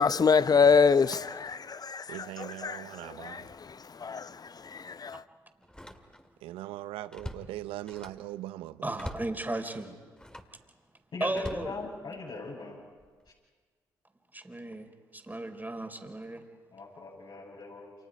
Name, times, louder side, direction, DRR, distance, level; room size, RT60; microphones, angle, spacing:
voice 1, 0.0-5.2, left 5 dB, 45° left, 0.8 m, -26 dB
voice 2, 2.1-3.5 6.4-8.9, right 15 dB, 80° right, 0.7 m, -40 dB
Slam, 4.2-4.3 5.6-6.4 6.8-8.3 8.9-9.4 10.1-10.6 11.3-12.4 13.0-13.3, left 1 dB, 10° left, 2.7 m, -44 dB
voice 3, 8.8-10.0 11.2-11.7 14.3-16.4, right 2 dB, 20° right, 3.6 m, -35 dB
voice 4, 11.1-12.8 16.7-17.9, left 3 dB, 65° left, 7.4 m, -40 dB
29.5 x 28.0 x 5.1 m
hypercardioid pair, 40°, 9 cm